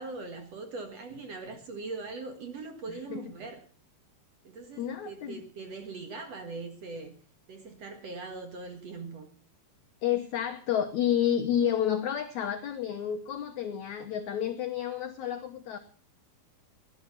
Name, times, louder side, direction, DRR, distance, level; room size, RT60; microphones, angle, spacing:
voice 1, 0.0-3.6 4.4-7.2 7.5-9.3, right 3 dB, 50° right, 6 dB, 2.3 m, -41 dB
voice 2, 2.9-3.2 4.8-5.4 10.0-15.8, left 10 dB, 75° left, 6 dB, 1.7 m, -30 dB
18.0 x 11.0 x 5.8 m, 0.41 s
omnidirectional pair, 4.6 m